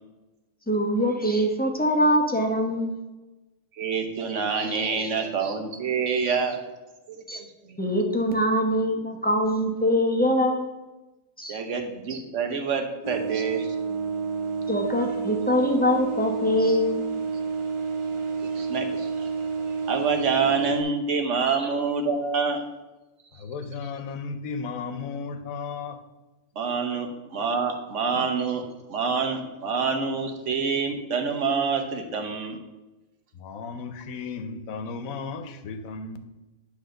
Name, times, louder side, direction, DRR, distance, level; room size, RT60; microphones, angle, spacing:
voice 1, 0.7-3.0 4.7-5.1 7.3-7.4 7.8-10.6 11.4-11.6 14.7-17.0, equal, 10° left, 2 dB, 0.5 m, -23 dB
voice 2, 3.7-6.6 7.1-7.8 11.5-13.7 18.4-19.3 19.9-22.6 26.6-28.6 28.9-32.6, right 5 dB, 65° right, 5 dB, 1.2 m, -27 dB
sound 1, 13.0-20.8, right 5 dB, 30° right, 0.7 m, -29 dB
voice 3, 23.5-25.9 33.5-36.2, left 4 dB, 85° left, 9 dB, 1.1 m, -34 dB
9.8 x 3.4 x 6.4 m, 1.1 s
omnidirectional pair, 1.4 m